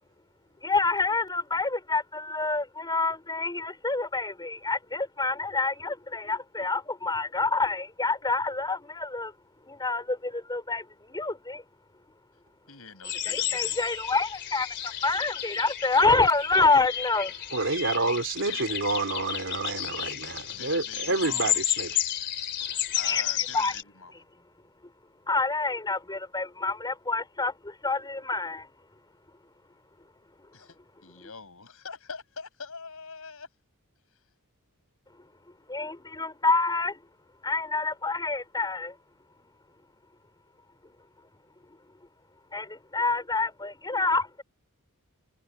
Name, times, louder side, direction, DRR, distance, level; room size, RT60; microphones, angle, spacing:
voice 1, 0.6-9.3 9.7-11.6 13.2-17.4 23.0-23.7 24.8-24.9 25.3-28.7 30.4-30.5 31.2-31.3 35.1-35.3 35.7-37.1 37.4-39.0 41.7-41.8 42.5-44.4, left 3 dB, 20° left, 3.3 m, -27 dB
voice 2, 12.7-13.8 17.6-18.7 20.5-21.7 22.9-24.1 30.5-33.5, left 5 dB, 70° left, 7.6 m, -44 dB
sound 1, 13.0-23.8, left 11 dB, 55° left, 3.2 m, -32 dB
voice 3, 17.5-22.0, right 3 dB, 60° right, 3.5 m, -29 dB
head